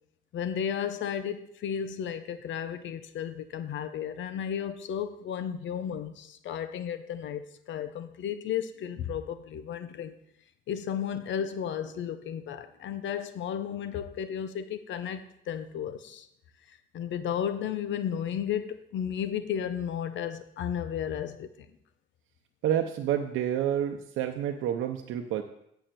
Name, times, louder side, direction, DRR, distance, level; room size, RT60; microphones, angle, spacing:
voice 1, 0.3-10.1 10.7-16.3 16.7-21.5, left 8 dB, 70° left, 0.9 m, -33 dB
voice 2, 22.6-25.4, right 10 dB, 85° right, 0.8 m, -29 dB
7.1 x 6.9 x 7.7 m
cardioid pair, 90°, 20 cm